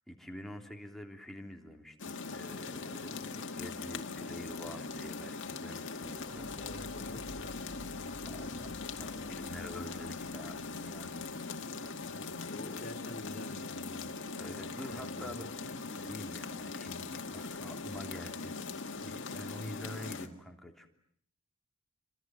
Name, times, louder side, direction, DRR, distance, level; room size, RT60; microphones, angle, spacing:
voice 1, 0.1-6.7 8.3-11.3 14.4-18.6 19.0-20.9, left 1 dB, ahead, 2 dB, 3.4 m, -47 dB
sound 1, 2.0-20.3, left 4 dB, 60° left, 2.2 m, -41 dB
sound 2, 6.0-12.6, left 1 dB, 80° left, 1.8 m, -52 dB
voice 2, 6.6-7.7 12.0-14.1 14.4-14.6 14.9-15.4, left 2 dB, 45° left, 4 dB, 4.0 m, -48 dB
28.0 x 26.5 x 7.9 m, 0.65 s
head